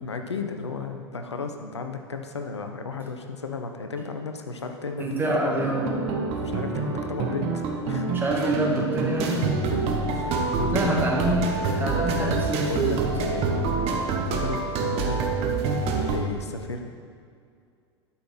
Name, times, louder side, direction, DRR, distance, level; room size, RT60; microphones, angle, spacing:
voice 1, 0.0-5.6 6.4-8.1 9.7-11.5 11.9-13.6 14.3-15.3 16.1-16.9, left 4 dB, 85° left, 5 dB, 0.7 m, -34 dB
voice 2, 5.0-5.9 8.1-9.4 10.7-11.4 11.8-13.0, right 1 dB, 15° right, -3 dB, 2.0 m, -26 dB
sound 1, 5.6-16.2, right 4 dB, 45° right, 1.1 m, -27 dB
11.5 x 5.7 x 4.3 m, 2.2 s
figure-of-eight pair, 80°, 14 cm